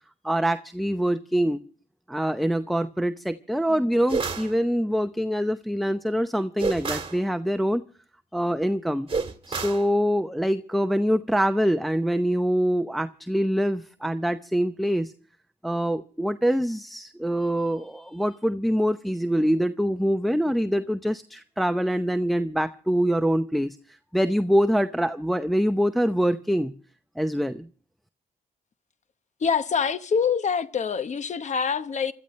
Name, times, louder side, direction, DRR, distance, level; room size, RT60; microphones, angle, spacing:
voice 1, 0.2-1.6 2.1-7.8 8.3-9.1 9.5-15.1 15.6-26.7 27.2-27.7, equal, ahead, 0.7 m, -24 dB
sound 1, 4.1-4.5 6.6-7.2 9.1-9.9, right 4 dB, 40° right, 1.8 m, -29 dB
voice 2, 29.4-32.1, left 6 dB, 55° left, 1.0 m, -25 dB
26.0 x 14.0 x 3.2 m
cardioid pair, 70°, 15 cm